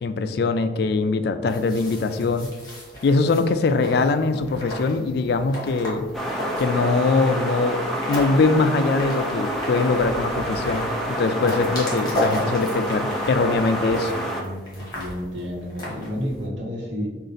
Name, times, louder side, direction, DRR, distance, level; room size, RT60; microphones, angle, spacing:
voice 1, 0.0-2.5 3.0-6.1 6.6-7.8 8.1-10.9 11.2-14.1, left 3 dB, 60° left, 9 dB, 0.3 m, -22 dB
sound 1, 1.5-16.5, equal, 20° left, 1.4 m, -35 dB
sound 2, 6.1-14.4, right 1 dB, ahead, 0.5 m, -28 dB
voice 2, 14.1-17.1, equal, 80° right, -2 dB, 1.1 m, -31 dB
5.0 x 2.5 x 3.9 m, 1.2 s
head